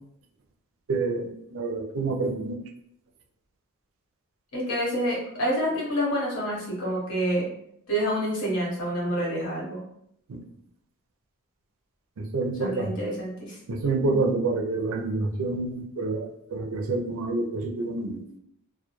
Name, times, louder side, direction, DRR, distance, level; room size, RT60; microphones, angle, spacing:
voice 1, 0.9-2.6 10.3-10.5 12.2-12.9 13.7-18.2, right 3 dB, 65° right, 3 dB, 0.4 m, -28 dB
voice 2, 4.5-7.5 7.9-9.8 12.6-13.6 14.0-14.3, equal, 80° left, -4 dB, 1.0 m, -28 dB
2.2 x 2.1 x 2.9 m, 0.73 s
head